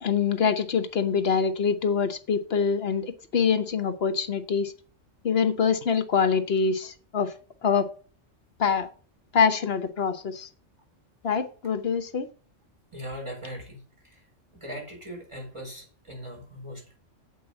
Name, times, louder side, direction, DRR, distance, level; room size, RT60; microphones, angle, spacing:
voice 1, 0.0-4.7 5.2-7.3 7.6-7.9 8.6-8.9 9.3-10.5 11.2-12.3, left 6 dB, 55° left, 11 dB, 1.1 m, -25 dB
voice 2, 12.9-13.8 14.0-14.2 14.5-17.0, equal, 25° right, -1 dB, 4.3 m, -39 dB
7.9 x 5.4 x 7.6 m, 0.40 s
omnidirectional pair, 1.3 m